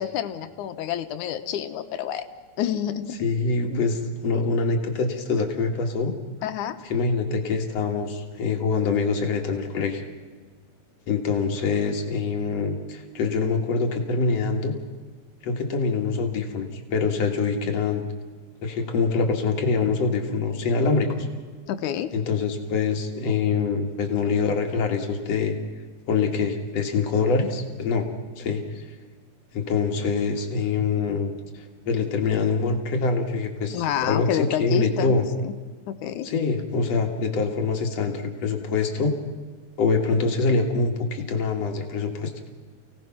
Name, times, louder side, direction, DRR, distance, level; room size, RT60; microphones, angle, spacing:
voice 1, 0.0-2.2 2.6-3.2 3.7-3.8 6.4-6.8 21.7-22.1 33.7-35.2 35.4-35.6 35.9-36.3, left 10 dB, 85° left, 9 dB, 2.5 m, -28 dB
voice 2, 3.2-6.1 6.8-10.0 11.1-14.8 15.4-18.0 18.6-21.3 22.1-25.5 26.1-28.1 28.4-28.6 29.5-35.3 36.2-39.2 39.8-42.3, left 4 dB, 60° left, 4 dB, 2.8 m, -25 dB
29.0 x 17.5 x 6.0 m, 1.5 s
omnidirectional pair, 3.4 m